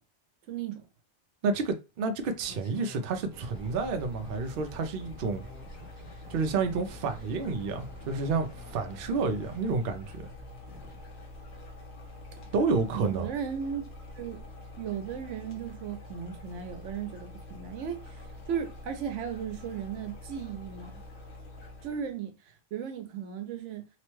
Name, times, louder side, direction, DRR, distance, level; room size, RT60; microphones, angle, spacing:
voice 1, 0.5-0.9 12.3-12.4 12.9-13.9 14.1-14.4 14.8-18.2 18.5-20.9 21.8-23.9, right 8 dB, 85° right, 0.9 m, -36 dB
voice 2, 1.4-5.4 6.3-10.3 12.5-13.3, right 4 dB, 60° right, 0.7 m, -30 dB
sound 1, 2.2-11.0, left 1 dB, 25° right, 0.6 m, -50 dB
sound 2, 3.2-22.1, left 2 dB, 70° left, 1.0 m, -46 dB
2.9 x 2.1 x 3.0 m
omnidirectional pair, 1.2 m